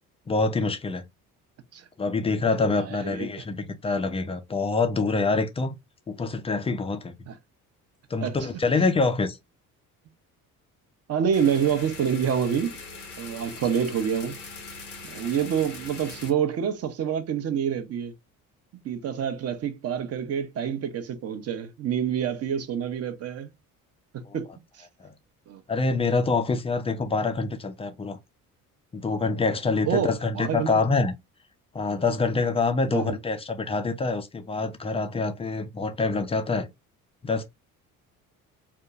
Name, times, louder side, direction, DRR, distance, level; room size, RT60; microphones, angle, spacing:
voice 1, 0.3-1.1 2.0-5.7 6.1-7.1 8.1-9.4 24.3-24.4 25.0-25.1 25.7-28.2 28.9-31.1 31.7-36.7 37.2-37.4, left 3 dB, 15° left, 0.4 m, -26 dB
voice 2, 2.8-3.4 7.3-7.4 8.2-8.4 11.1-12.8 13.2-14.4 15.0-18.1 18.8-23.5 24.1-24.5 24.8-24.9 25.5-25.6 29.8-30.7 32.9-33.2, right 8 dB, 35° right, 0.6 m, -27 dB
sound 1, 11.3-16.3, left 4 dB, 85° left, 0.7 m, -41 dB
3.5 x 2.2 x 2.3 m
figure-of-eight pair, 50°, 44 cm